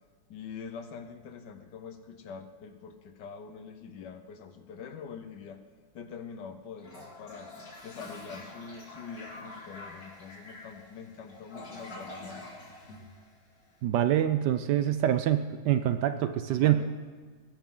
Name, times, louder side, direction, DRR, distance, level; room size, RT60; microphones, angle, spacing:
voice 1, 0.3-5.6 5.9-7.5 7.8-12.4 16.6-16.9, left 6 dB, 65° left, 8 dB, 1.4 m, -44 dB
Toilet flush, 6.8-13.7, left 2 dB, 50° left, 2.7 m, -46 dB
voice 2, 13.8-16.8, right 11 dB, 75° right, 10 dB, 1.0 m, -25 dB
19.5 x 10.0 x 3.8 m, 1.5 s
omnidirectional pair, 2.1 m